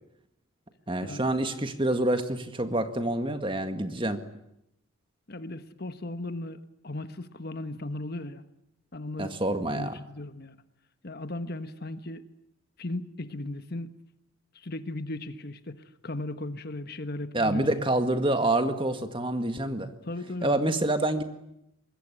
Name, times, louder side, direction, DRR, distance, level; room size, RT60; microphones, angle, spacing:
voice 1, 0.9-4.2 9.2-10.0 17.3-19.9 20.4-21.2, right 1 dB, 25° right, 8 dB, 1.9 m, -27 dB
voice 2, 5.3-8.4 8.9-9.4 9.7-10.6 11.0-12.2 12.8-13.9 14.5-15.8 16.0-17.9 20.1-20.5, left 2 dB, 45° left, 11 dB, 1.3 m, -36 dB
25.0 x 21.5 x 9.9 m, 0.79 s
head